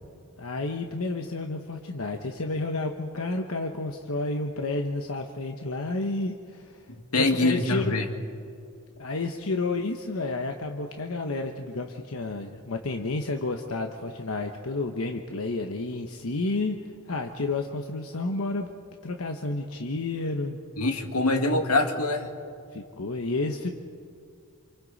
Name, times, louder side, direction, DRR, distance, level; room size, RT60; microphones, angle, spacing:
voice 1, 0.4-6.9 7.2-8.0 9.0-16.8 17.1-18.7 19.0-20.6 22.7-23.7, left 2 dB, 65° left, 4 dB, 1.1 m, -31 dB
voice 2, 7.1-8.1 20.8-22.3, left 2 dB, 90° left, 4 dB, 2.0 m, -24 dB
28.0 x 28.0 x 4.1 m, 2.4 s
head